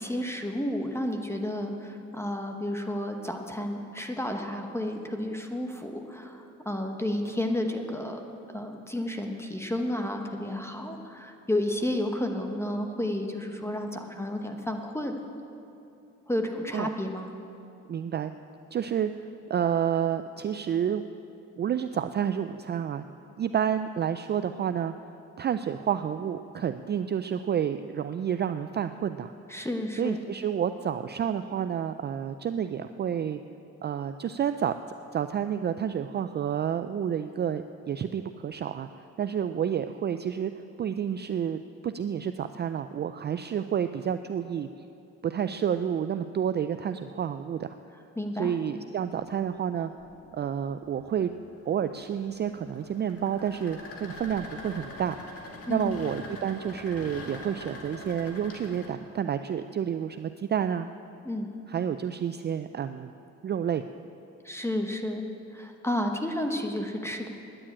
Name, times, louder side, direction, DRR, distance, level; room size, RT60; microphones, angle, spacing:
voice 1, 0.0-8.2 8.5-15.2 16.3-17.3 29.5-30.2 48.2-48.6 55.7-55.9 61.2-61.5 64.4-65.2 65.5-67.3, left 1 dB, 10° left, 4 dB, 1.0 m, -31 dB
voice 2, 17.9-18.3 18.7-19.1 19.5-21.0 21.6-23.0 23.4-24.9 25.4-29.3 30.0-33.4 33.8-34.7 35.1-38.9 39.2-40.5 40.8-44.7 45.2-47.7 48.4-49.9 50.3-51.3 51.7-55.2 55.7-60.9 61.7-63.1 63.4-63.8, right 8 dB, 35° right, 10 dB, 0.4 m, -29 dB
sound 1, 49.4-58.9, left 1 dB, 50° left, 2.1 m, -45 dB
10.0 x 9.9 x 8.7 m, 2.7 s
cardioid pair, 90°, 30 cm